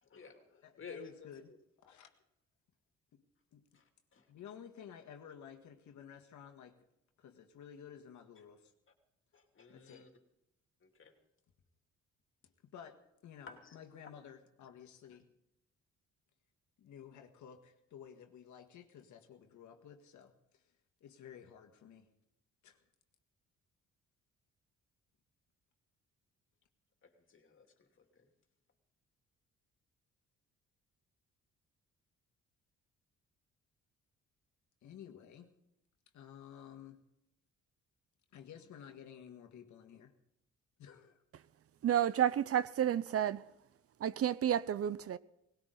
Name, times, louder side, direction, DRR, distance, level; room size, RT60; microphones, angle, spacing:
voice 1, 0.0-1.6 3.7-4.3 8.4-8.5 9.3-10.1 10.8-11.1 13.5-13.8 27.0-28.3, left 5 dB, 40° left, 2.8 m, -54 dB
voice 2, 0.6-1.5 1.8-2.1 3.1-3.2 3.5-3.8 4.3-6.8 7.2-8.7 9.7-10.1 12.4-15.3 16.8-20.7 21.0-22.1 22.6-22.8 34.8-35.5 36.1-37.1 38.3-40.1 40.8-41.2, left 8 dB, 70° left, 1.8 m, -53 dB
voice 3, 41.8-43.5 44.0-45.2, right 10 dB, 50° right, 0.6 m, -31 dB
19.0 x 17.5 x 3.9 m
cardioid pair, 90°, 30 cm